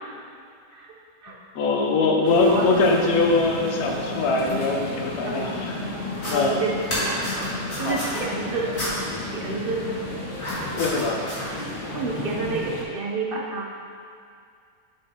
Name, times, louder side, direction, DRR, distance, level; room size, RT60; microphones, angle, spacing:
voice 1, 1.5-5.8 6.3-6.6 7.8-8.0 10.7-11.2, left 3 dB, 70° left, 1 dB, 1.2 m, -22 dB
sound 1, 2.2-12.8, left 2 dB, 35° left, 0.8 m, -33 dB
voice 2, 2.4-2.8 5.2-5.7 6.2-7.3 7.8-8.7 9.2-9.9 11.9-13.7, right 3 dB, 60° right, -2 dB, 0.6 m, -29 dB
eloprogo-handtorchrhythm, 6.1-6.3 6.8-8.2 8.7-8.9 10.3-11.5, left 1 dB, 55° left, 2.1 m, -31 dB
7.0 x 6.7 x 2.9 m, 2.3 s
omnidirectional pair, 1.7 m